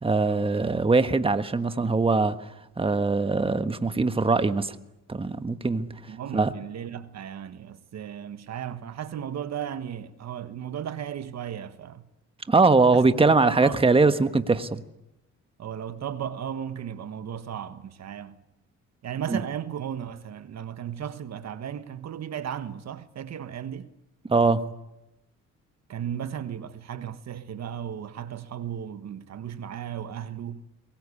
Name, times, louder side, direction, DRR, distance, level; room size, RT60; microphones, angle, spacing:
voice 1, 0.0-2.4 2.8-4.7 5.1-5.9 6.3-6.5 12.5-14.8 19.3-19.4 24.3-24.6, right 3 dB, 20° right, 1.4 m, -21 dB
voice 2, 6.1-12.0 12.9-13.8 15.6-18.4 19.0-23.9 25.9-30.7, right 9 dB, 60° right, 1.4 m, -35 dB
23.5 x 21.5 x 8.5 m
cardioid pair, 90°, 30 cm